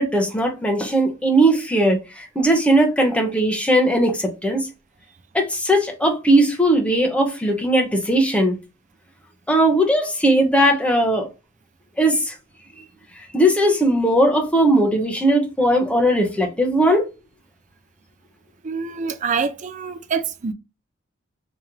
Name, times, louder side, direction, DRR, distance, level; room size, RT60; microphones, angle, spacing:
voice 1, 0.0-4.7 5.3-8.6 9.5-11.3 12.0-12.3 13.3-17.0, right 1 dB, 5° left, 0.8 m, -18 dB
voice 2, 18.6-20.5, right 5 dB, 40° right, 0.5 m, -26 dB
3.2 x 2.9 x 3.6 m
head